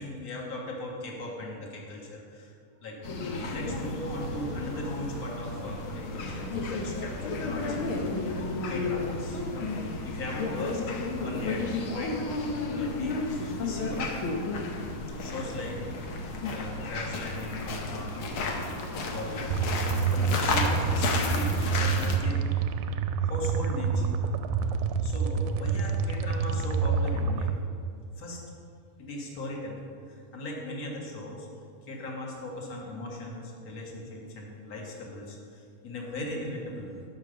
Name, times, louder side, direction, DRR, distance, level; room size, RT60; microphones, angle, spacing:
voice 1, 0.0-2.6 2.8-3.0 3.4-9.6 9.9-12.2 12.7-13.2 13.6-14.1 15.2-16.1 16.5-18.5 19.1-19.6 20.3-22.5 23.2-24.2 24.5-24.7 25.0-27.5 28.2-28.4 29.0-31.5 31.8-37.0, left 1 dB, 40° left, -2 dB, 1.4 m, -38 dB
sound 1, 3.0-22.2, left 3 dB, 85° left, 1.1 m, -32 dB
sound 2, 19.5-27.5, right 5 dB, 80° right, 1.8 m, -27 dB
9.7 x 6.0 x 6.7 m, 2.4 s
omnidirectional pair, 3.7 m